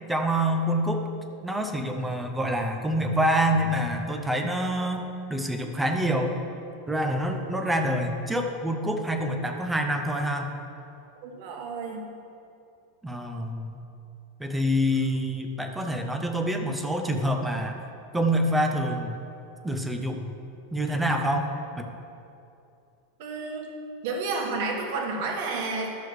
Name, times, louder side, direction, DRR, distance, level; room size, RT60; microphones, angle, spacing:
voice 1, 0.1-1.0 1.4-6.4 6.9-10.5 13.0-13.8 14.4-17.8 18.1-19.2 19.6-20.2 20.7-21.9, equal, 5° right, 4 dB, 0.5 m, -26 dB
voice 2, 11.2-12.1 23.2-23.7 24.0-25.9, right 3 dB, 55° right, 1 dB, 1.3 m, -31 dB
12.0 x 6.7 x 3.2 m, 2.7 s
supercardioid pair, 160°, 0 cm